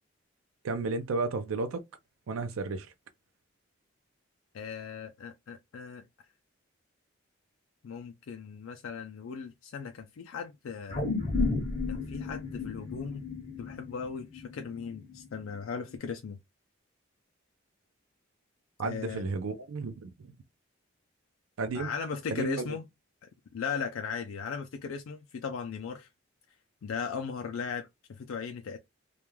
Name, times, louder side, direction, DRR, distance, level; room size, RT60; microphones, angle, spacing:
voice 1, 0.6-1.8 2.3-2.9 18.8-20.1 21.6-21.9 22.3-22.8, right 3 dB, 85° right, 0.4 m, -33 dB
voice 2, 4.5-6.0 7.8-11.0 11.9-13.2 13.6-16.4 18.8-19.2 21.7-22.8 23.5-26.1 26.8-28.8, left 6 dB, 85° left, 0.4 m, -37 dB
sound 1, 10.9-15.4 15.8-15.9, left 3 dB, 30° left, 0.6 m, -33 dB
2.3 x 2.2 x 3.1 m
head